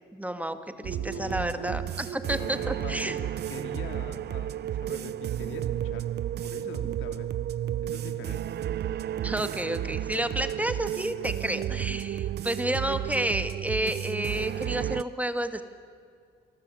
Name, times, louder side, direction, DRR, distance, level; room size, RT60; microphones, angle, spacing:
voice 1, 0.1-3.2 9.2-15.6, right 1 dB, 5° right, 9 dB, 1.9 m, -30 dB
voice 2, 0.7-1.8 2.4-6.1 6.4-7.3 7.8-8.6, left 6 dB, 85° left, 6 dB, 3.0 m, -43 dB
sound 1, 0.8-15.0, right 11 dB, 55° right, 0.6 m, -32 dB
29.0 x 21.5 x 8.5 m, 2.3 s
cardioid pair, 90°, 20 cm